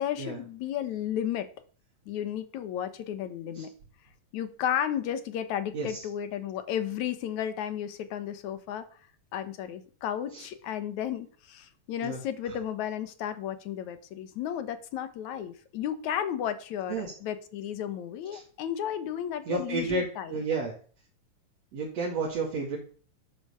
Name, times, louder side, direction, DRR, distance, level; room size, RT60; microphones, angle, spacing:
voice 1, 0.0-1.5 2.1-3.7 4.3-8.9 9.3-20.4, left 10 dB, 80° left, 11 dB, 2.6 m, -33 dB
voice 2, 19.5-20.7 21.7-22.8, right 4 dB, 60° right, -2 dB, 3.4 m, -31 dB
12.5 x 8.7 x 6.9 m, 0.42 s
omnidirectional pair, 3.3 m